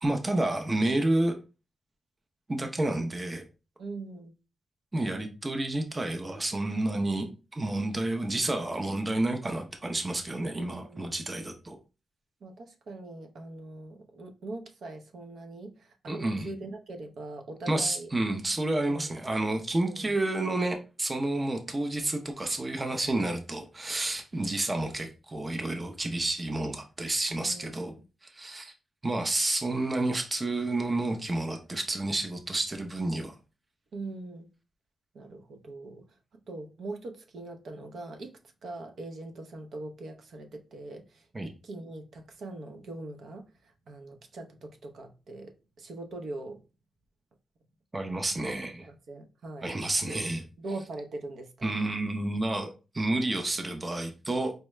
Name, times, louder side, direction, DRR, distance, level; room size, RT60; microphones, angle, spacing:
voice 1, 0.0-1.4 2.5-3.4 4.9-11.8 16.1-16.5 17.7-27.9 28.2-28.7 29.0-33.4 41.3-41.5 47.9-48.9 49.6-50.4 51.6-54.5, right 2 dB, 20° right, 0.5 m, -30 dB
voice 2, 3.8-4.3 10.5-11.3 12.4-18.1 18.9-19.1 19.8-20.2 24.3-24.5 27.4-28.0 33.9-34.5 35.1-46.7 48.9-49.7 50.0-50.2 50.6-51.7, right 2 dB, 65° right, 0.6 m, -42 dB
4.6 x 2.1 x 3.1 m
wide cardioid pair, 145°, 0 cm